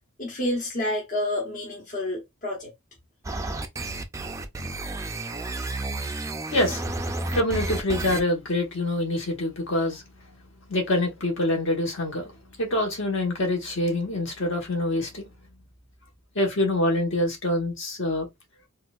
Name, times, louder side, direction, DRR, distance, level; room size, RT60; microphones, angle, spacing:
voice 1, 0.2-2.7, left 1 dB, 35° left, 0.8 m, -29 dB
sound 1, 3.2-8.2, right 2 dB, 15° right, 0.3 m, -31 dB
voice 2, 6.5-6.8 7.3-10.0 10.7-12.3 12.6-15.3 16.3-18.3, left 1 dB, 60° left, 1.3 m, -25 dB
4.2 x 2.4 x 2.4 m
head